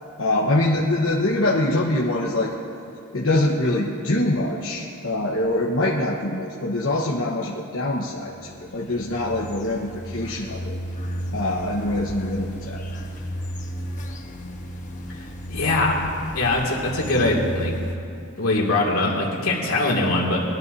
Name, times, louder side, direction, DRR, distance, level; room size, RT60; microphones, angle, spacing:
voice 1, 0.2-2.5 3.1-10.8 11.3-12.8, left 1 dB, 70° left, -4 dB, 1.2 m, -24 dB
sound 1, 8.3-18.0, equal, 40° left, 1.2 m, -33 dB
voice 2, 15.5-15.9 16.3-17.7 18.4-20.4, left 2 dB, 90° left, -3 dB, 2.5 m, -22 dB
21.5 x 12.5 x 2.7 m, 2.7 s
head